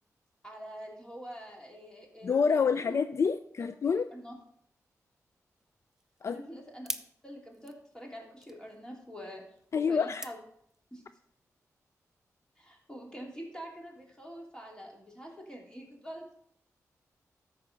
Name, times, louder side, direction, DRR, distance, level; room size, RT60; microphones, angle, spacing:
voice 1, 0.4-3.0 4.1-4.4 6.3-6.9 7.2-9.4 9.7-10.4 10.9-11.0 12.6-16.4, equal, 15° left, 2.9 m, -45 dB
voice 2, 2.2-4.1 6.2-6.4 9.7-10.3, left 5 dB, 50° left, 0.4 m, -27 dB
sound 1, 5.5-11.2, right 1 dB, 5° right, 0.7 m, -47 dB
13.0 x 4.9 x 5.2 m
cardioid pair, 80°, 6 cm